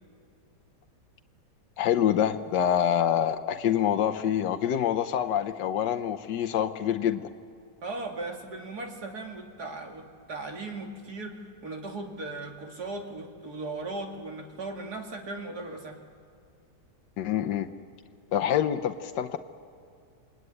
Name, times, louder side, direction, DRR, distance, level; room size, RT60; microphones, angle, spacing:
voice 1, 1.8-7.2 17.2-17.7 18.3-19.4, left 10 dB, 90° left, 6 dB, 1.5 m, -26 dB
voice 2, 7.8-16.0, right 2 dB, 65° right, 2 dB, 2.8 m, -37 dB
27.0 x 19.5 x 9.8 m, 2.4 s
omnidirectional pair, 1.8 m